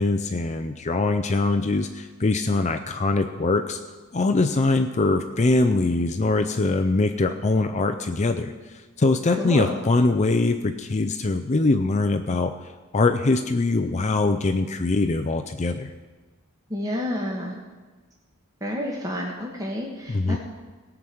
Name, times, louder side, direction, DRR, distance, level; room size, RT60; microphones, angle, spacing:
voice 1, 0.0-3.8 4.1-8.5 9.0-12.5 12.9-15.9 20.1-20.4, left 3 dB, 30° left, 8 dB, 0.5 m, -22 dB
voice 2, 9.4-9.8 16.7-17.6 18.6-20.4, left 1 dB, 15° right, -2 dB, 1.3 m, -29 dB
17.0 x 6.0 x 7.8 m, 1.3 s
head